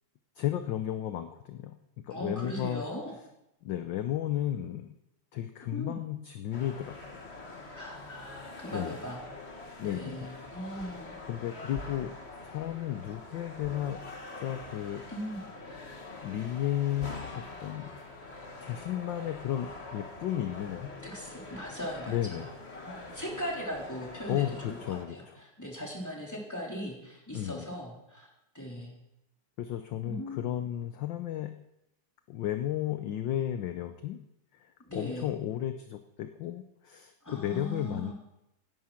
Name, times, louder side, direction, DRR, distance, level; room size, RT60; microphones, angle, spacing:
voice 1, 0.4-2.8 3.6-4.9 5.3-7.0 8.7-9.0 9.8-10.3 11.3-15.1 16.2-17.9 18.6-21.1 22.1-22.5 24.3-25.4 27.3-27.7 29.6-31.6 32.3-34.2 34.6-38.1, left 11 dB, 65° left, 8 dB, 1.4 m, -34 dB
voice 2, 2.1-3.1 5.7-6.0 7.7-9.2 9.8-11.2 15.1-15.5 21.0-22.5 22.8-28.3 28.5-29.0 30.0-30.4 34.8-35.3 37.2-38.1, equal, 5° left, -2 dB, 3.6 m, -39 dB
sound 1, 6.5-25.1, left 2 dB, 30° left, 1.8 m, -45 dB
17.5 x 11.0 x 5.8 m, 0.87 s
omnidirectional pair, 2.4 m